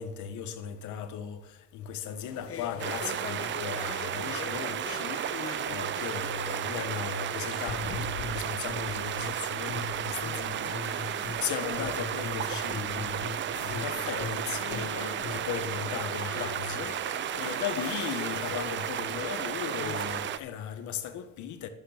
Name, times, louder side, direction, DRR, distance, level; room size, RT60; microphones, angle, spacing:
voice 1, 0.0-21.7, left 8 dB, 70° left, 1.3 m, -37 dB
sound 1, 2.1-20.5, left 7 dB, 45° left, 1.2 m, -44 dB
sound 2, 2.8-20.4, right 11 dB, 40° right, 0.4 m, -33 dB
sound 3, 7.6-9.3 9.7-11.4 11.7-15.4, left 4 dB, 90° left, 2.7 m, -39 dB
11.0 x 9.2 x 5.0 m
cardioid pair, 110°, 31 cm